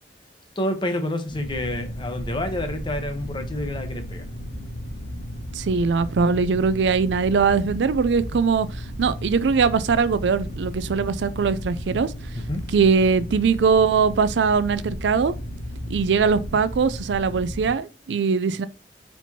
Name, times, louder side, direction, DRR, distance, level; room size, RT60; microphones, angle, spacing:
voice 1, 0.6-4.3 12.3-12.6, left 1 dB, 25° left, 0.9 m, -28 dB
sound 1, 1.3-17.7, equal, 65° left, 1.9 m, -34 dB
voice 2, 5.5-12.1 12.7-15.3 15.9-18.7, right 5 dB, 80° right, 0.4 m, -21 dB
4.4 x 4.4 x 2.8 m
head